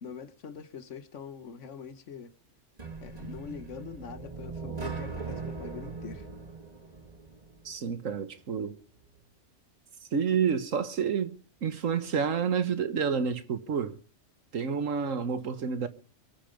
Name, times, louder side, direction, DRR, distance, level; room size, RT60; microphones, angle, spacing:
voice 1, 0.0-2.3 3.0-6.3, left 6 dB, 70° left, 1.4 m, -43 dB
sound 1, 2.8-7.7, right 4 dB, 30° right, 2.1 m, -40 dB
voice 2, 7.6-8.8 10.1-11.3 11.6-14.0 14.5-15.9, right 6 dB, 90° right, 1.7 m, -29 dB
23.5 x 9.0 x 5.2 m
omnidirectional pair, 1.3 m